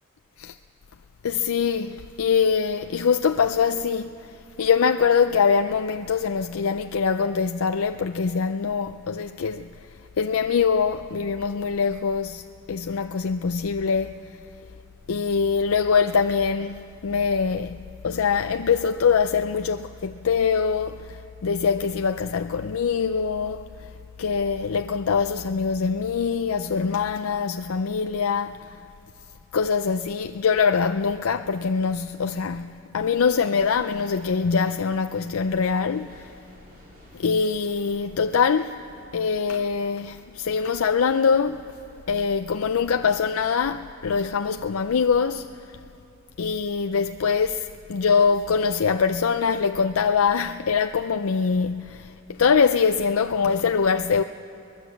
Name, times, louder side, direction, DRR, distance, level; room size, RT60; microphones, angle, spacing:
voice 1, 1.2-4.1 4.6-9.7 10.2-12.4 12.7-14.2 15.1-17.8 18.0-23.6 24.2-28.8 29.5-36.3 37.2-38.8 39.1-41.6 42.1-45.5 46.4-54.2, left 6 dB, 75° left, 0.5 m, -23 dB
sound 1, 33.8-42.3, equal, 45° right, 3.7 m, -53 dB
23.5 x 20.0 x 7.2 m
head